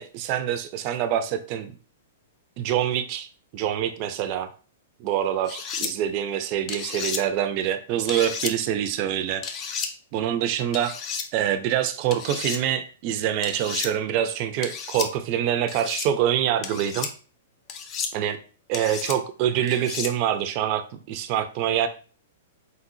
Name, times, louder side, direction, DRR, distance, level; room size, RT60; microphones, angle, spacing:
voice 1, 0.0-1.7 2.6-3.3 3.5-4.5 5.0-9.4 10.1-10.9 11.3-17.1 18.1-18.4 18.7-21.9, right 10 dB, 45° right, 9 dB, 0.5 m, -25 dB
sound 1, 5.5-5.9 6.7-7.2 8.1-8.5 9.4-9.9 10.7-11.3 12.1-12.6 13.4-13.9 14.6-15.1 15.7-16.1 16.6-17.1 17.7-18.1 18.7-19.2 19.7-20.1, left 6 dB, 35° left, 0.6 m, -32 dB
4.1 x 3.9 x 2.7 m, 0.37 s
hypercardioid pair, 120°, 0 cm